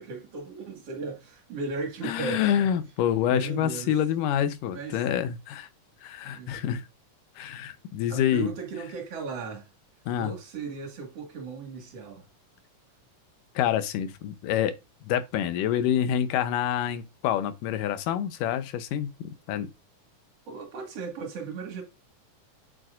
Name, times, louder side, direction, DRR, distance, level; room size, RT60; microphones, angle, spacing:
voice 1, 0.0-2.7 3.3-3.9 4.7-5.0 6.2-6.8 8.1-9.7 10.2-12.2 20.5-21.8, right 4 dB, 50° right, 2.8 m, -36 dB
voice 2, 2.0-5.7 6.0-6.9 7.4-8.5 10.1-10.3 13.6-14.7 15.1-19.7, left 10 dB, 85° left, 2.4 m, -27 dB
7.7 x 7.7 x 2.5 m
omnidirectional pair, 3.7 m